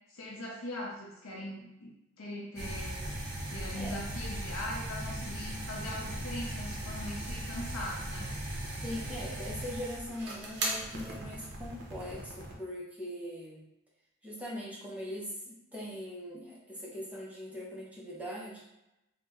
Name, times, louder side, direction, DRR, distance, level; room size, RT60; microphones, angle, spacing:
voice 1, 0.1-3.0 3.5-8.3, left 1 dB, 65° left, -3 dB, 0.5 m, -41 dB
sound 1, 2.6-12.6, right 1 dB, 50° right, 0.6 m, -38 dB
voice 2, 8.8-13.6 14.2-18.6, equal, 5° right, -5 dB, 0.6 m, -41 dB
3.0 x 2.0 x 3.4 m, 0.91 s
head